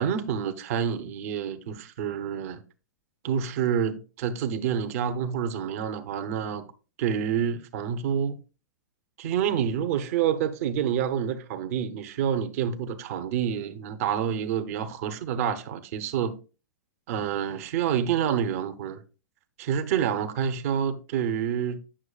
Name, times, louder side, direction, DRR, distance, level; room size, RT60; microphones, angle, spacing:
voice 1, 0.0-2.6 3.2-6.7 7.0-8.4 9.2-16.4 17.1-19.0 19.6-21.8, right 8 dB, 50° right, 0.9 m, -28 dB
8.7 x 6.2 x 2.4 m
hypercardioid pair, 110°, 10 cm